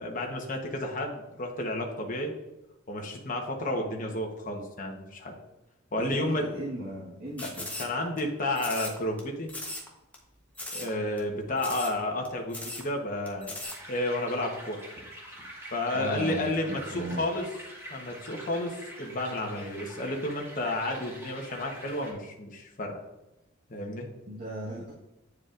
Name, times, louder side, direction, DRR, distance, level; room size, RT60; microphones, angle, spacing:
voice 1, 0.0-2.3 2.9-5.3 5.9-6.4 7.4-7.5 7.8-9.5 10.7-13.5 13.9-15.0 15.7-17.5 17.9-23.0 23.7-24.1, left 1 dB, 40° left, 1 dB, 1.0 m, -31 dB
voice 2, 6.0-7.7 15.9-17.3 24.3-24.9, right 1 dB, 55° right, -7 dB, 1.4 m, -37 dB
sound 1, 7.4-8.2 8.6-9.2 9.5-9.9 10.1-10.2 10.6-10.9 11.2-11.3 11.6-12.0 12.2-12.3 12.5-12.9 13.3-13.8, left 1 dB, 5° left, 1.0 m, -38 dB
sound 2, 13.6-22.1, right 1 dB, 10° right, 1.4 m, -46 dB
9.4 x 4.8 x 2.5 m, 0.94 s
head